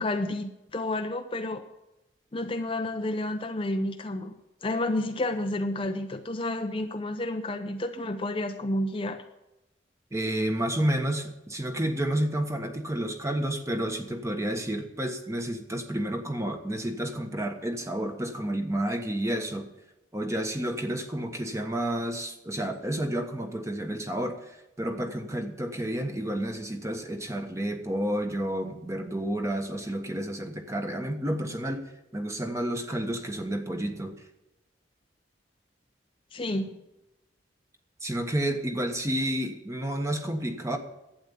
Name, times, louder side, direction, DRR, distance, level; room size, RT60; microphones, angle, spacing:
voice 1, 0.0-1.6 2.3-4.3 4.6-9.2 36.3-36.7, left 1 dB, 30° left, 6 dB, 0.7 m, -30 dB
voice 2, 10.1-19.7 20.1-31.8 32.1-34.1 38.0-40.8, right 1 dB, 15° right, 5 dB, 1.3 m, -30 dB
11.5 x 8.8 x 7.1 m, 0.94 s
head